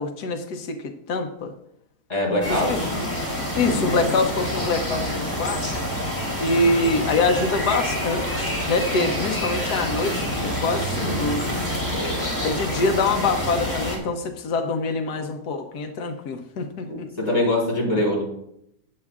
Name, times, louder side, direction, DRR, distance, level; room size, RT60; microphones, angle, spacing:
voice 1, 0.0-1.5 2.5-2.8 3.6-5.7 6.4-11.8 12.4-17.1, left 3 dB, 90° left, 5 dB, 1.5 m, -25 dB
voice 2, 2.1-2.9 8.9-9.0 11.9-12.2 16.8-18.2, left 1 dB, 25° left, -3 dB, 3.9 m, -24 dB
sound 1, 2.4-14.0, equal, 10° left, 3.3 m, -27 dB
15.0 x 9.7 x 2.4 m, 0.76 s
omnidirectional pair, 1.6 m